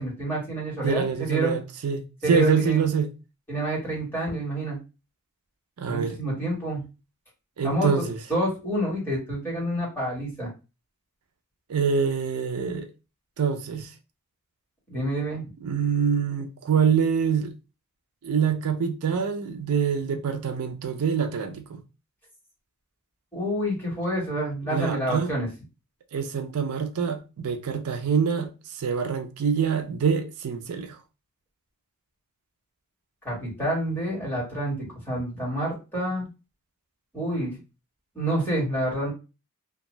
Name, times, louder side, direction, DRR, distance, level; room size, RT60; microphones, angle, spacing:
voice 1, 0.0-1.6 2.2-2.8 3.5-4.8 5.9-6.8 7.6-10.5 14.9-15.4 23.3-25.5 33.2-36.3 37.1-37.6 38.1-39.1, right 1 dB, 10° left, 1.5 m, -28 dB
voice 2, 0.8-2.0 2.3-3.1 5.8-6.2 7.6-8.2 11.7-12.9 13.4-13.9 15.6-17.5 18.2-21.8 24.7-25.3 26.1-28.5 28.8-31.0, right 6 dB, 85° right, 0.4 m, -25 dB
2.5 x 2.3 x 3.0 m
head